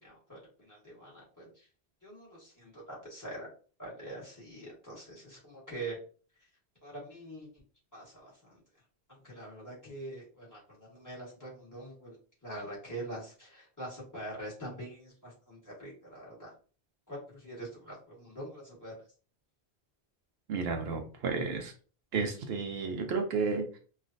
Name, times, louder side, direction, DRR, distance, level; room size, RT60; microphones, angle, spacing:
voice 1, 0.0-1.6 2.0-3.5 3.8-6.0 6.8-7.5 7.9-8.6 9.2-12.1 12.4-16.5 17.1-19.0, right 1 dB, 15° left, -5 dB, 1.5 m, -44 dB
voice 2, 20.5-21.7 22.1-23.8, right 4 dB, 75° right, 4 dB, 0.8 m, -32 dB
3.1 x 2.3 x 2.6 m, 0.38 s
omnidirectional pair, 1.1 m